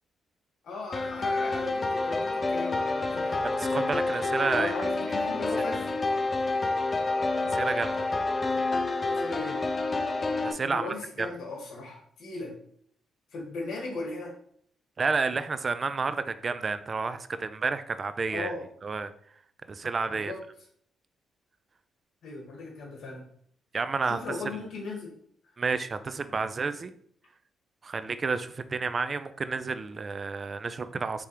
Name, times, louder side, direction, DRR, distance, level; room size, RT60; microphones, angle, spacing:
voice 1, 0.6-3.5 4.6-5.9 9.0-9.6 10.7-12.5 13.3-14.4 18.3-18.7 20.1-20.4 22.2-23.2 24.0-25.1, left 3 dB, 70° left, 0 dB, 1.4 m, -37 dB
sound 1, 0.9-10.5, left 3 dB, 30° left, 0.5 m, -28 dB
voice 2, 3.4-4.7 5.1-5.2 7.4-8.0 10.4-10.9 11.2-11.3 15.0-18.5 18.8-19.1 19.7-20.3 23.7-24.2 25.6-26.9 27.8-31.3, right 4 dB, 40° right, 11 dB, 0.3 m, -30 dB
4.8 x 3.4 x 2.9 m, 0.64 s
cardioid pair, 85°, 0 cm